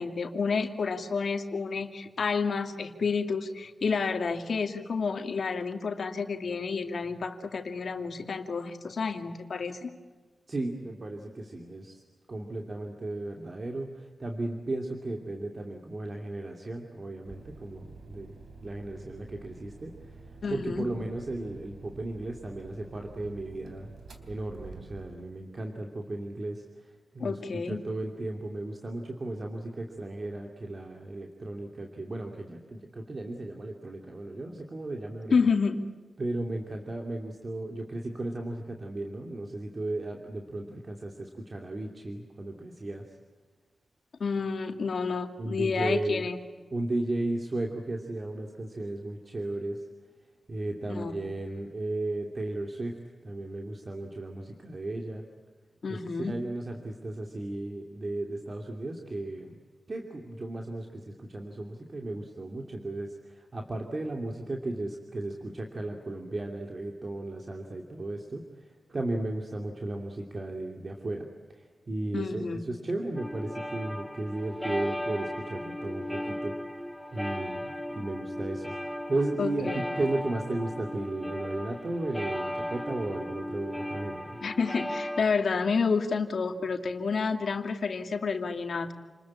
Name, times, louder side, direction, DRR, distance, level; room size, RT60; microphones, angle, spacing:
voice 1, 0.0-10.0 20.4-20.8 27.2-27.8 35.3-35.8 44.2-46.4 50.9-51.2 55.8-56.4 72.1-72.7 79.4-79.8 84.4-88.9, left 5 dB, 70° left, 5 dB, 2.4 m, -29 dB
voice 2, 10.5-12.0 12.3-18.3 18.6-19.9 20.5-23.9 24.3-26.6 27.1-35.3 36.2-43.1 45.4-46.3 46.7-49.9 50.5-53.0 53.2-55.2 55.9-59.6 59.9-68.4 68.9-71.3 71.5-76.5 77.1-84.4, right 2 dB, 40° right, 2 dB, 2.8 m, -35 dB
sound 1, 17.2-25.3, right 3 dB, 85° right, 3.4 m, -49 dB
sound 2, 73.2-85.2, left 1 dB, 5° left, 1.2 m, -36 dB
29.0 x 21.5 x 8.7 m, 1.4 s
wide cardioid pair, 95°, 0 cm